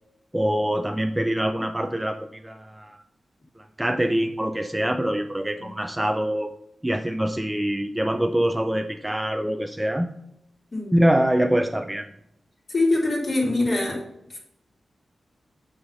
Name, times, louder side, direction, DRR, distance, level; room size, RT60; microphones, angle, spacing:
voice 1, 0.3-2.2 2.4-3.0 3.8-6.5 6.8-10.1 10.9-12.1, right 1 dB, 10° right, 5 dB, 0.4 m, -24 dB
voice 2, 12.7-14.0 14.3-14.4, left 2 dB, 35° left, -4 dB, 2.7 m, -24 dB
8.6 x 5.6 x 5.5 m, 0.79 s
wide cardioid pair, 170°, 0 cm